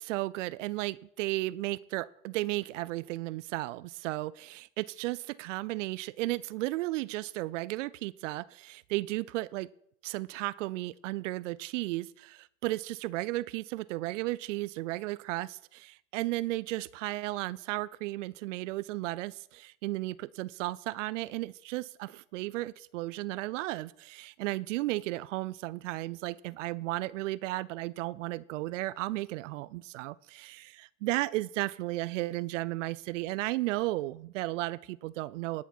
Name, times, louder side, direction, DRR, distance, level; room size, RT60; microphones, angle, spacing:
voice 1, 0.0-9.7 10.0-35.6, right 18 dB, 65° right, 20 dB, 0.5 m, -34 dB
18.5 x 7.1 x 4.4 m, 0.72 s
hypercardioid pair, 90°, 41 cm